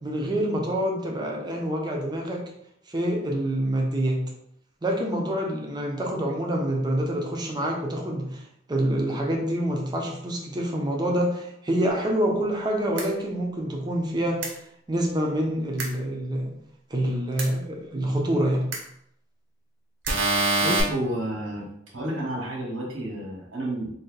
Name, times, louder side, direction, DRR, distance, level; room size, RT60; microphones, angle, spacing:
voice 1, 0.0-2.4 2.9-4.2 4.8-8.4 8.7-14.6 14.9-16.5 16.9-18.7, right 1 dB, 20° right, 0 dB, 0.6 m, -26 dB
sound 1, 13.0-13.1 14.4-14.5 15.8-15.9 17.4-17.5 18.7-18.8 20.0-20.8, right 2 dB, 75° right, 0.8 m, -24 dB
voice 2, 20.6-21.7 21.9-23.9, right 1 dB, 90° right, -3 dB, 1.3 m, -30 dB
2.7 x 2.7 x 3.8 m, 0.73 s
head